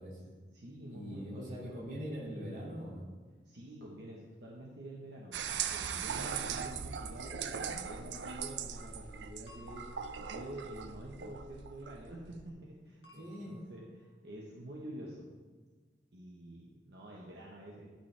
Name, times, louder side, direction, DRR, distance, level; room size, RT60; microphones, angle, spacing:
voice 1, 0.0-0.4 0.9-3.1 13.1-13.6, equal, 50° right, -4 dB, 2.5 m, -42 dB
voice 2, 0.5-1.7 3.5-5.3 5.7-9.8 10.2-15.3 16.1-17.9, right 1 dB, 75° right, -3 dB, 1.1 m, -48 dB
sound 1, 5.3-12.5, right 7 dB, 90° right, 0.5 m, -40 dB
sound 2, 9.5-11.1 13.0-14.2, left 2 dB, 80° left, 1.5 m, -60 dB
12.0 x 5.7 x 3.4 m, 1.4 s
head